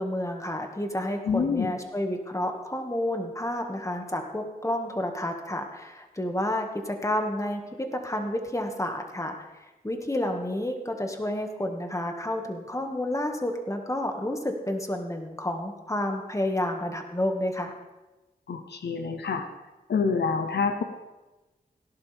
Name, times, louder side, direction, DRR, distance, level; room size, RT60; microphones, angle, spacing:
voice 1, 0.0-9.4 9.8-17.7, left 1 dB, 20° left, 3 dB, 2.0 m, -30 dB
voice 2, 1.3-1.7 18.5-19.5 19.9-20.8, left 5 dB, 80° left, 7 dB, 0.9 m, -27 dB
17.5 x 11.5 x 3.6 m, 1.1 s
cardioid pair, 50°, 17 cm